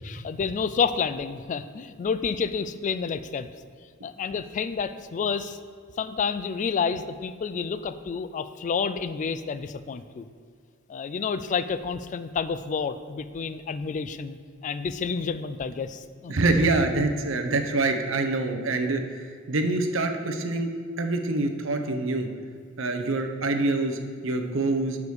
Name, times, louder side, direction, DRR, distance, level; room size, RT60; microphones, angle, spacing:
voice 1, 0.0-3.5 4.0-5.6 6.0-10.2 10.9-14.4 14.6-16.3, left 5 dB, 35° left, 12 dB, 0.3 m, -29 dB
voice 2, 16.3-20.7 21.0-22.3 22.8-25.0, right 2 dB, 65° right, 6 dB, 0.8 m, -25 dB
7.0 x 4.8 x 6.2 m, 2.1 s
head